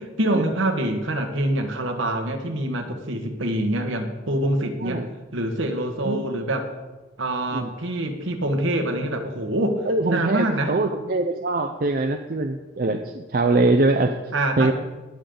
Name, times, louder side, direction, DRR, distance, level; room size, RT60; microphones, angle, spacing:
voice 1, 0.0-5.0 5.3-6.7 7.2-10.7 14.3-14.7, right 1 dB, 65° right, 4 dB, 1.4 m, -25 dB
voice 2, 9.9-14.2 14.6-14.7, right 2 dB, 45° right, 5 dB, 0.5 m, -23 dB
18.5 x 6.9 x 3.9 m, 1.2 s
head